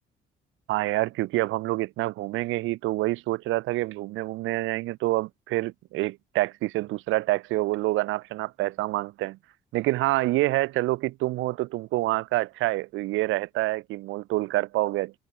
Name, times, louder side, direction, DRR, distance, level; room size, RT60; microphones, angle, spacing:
voice 1, 0.7-9.4 9.7-15.1, right 18 dB, 85° right, 0.4 m, -27 dB
cardioid pair, 90°, 20 cm